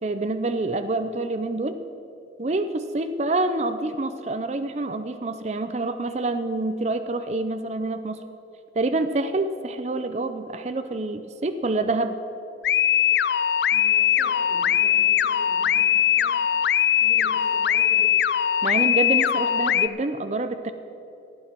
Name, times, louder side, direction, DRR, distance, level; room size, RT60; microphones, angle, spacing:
voice 1, 0.0-1.8 2.4-8.2 8.8-12.2 18.6-20.7, right 2 dB, 40° right, 9 dB, 0.5 m, -27 dB
sound 1, 12.6-19.9, left 9 dB, 70° left, 0.3 m, -21 dB
voice 2, 13.7-16.4 17.0-18.1, left 1 dB, 5° left, -10 dB, 3.0 m, -43 dB
14.5 x 9.7 x 6.0 m, 2.8 s
head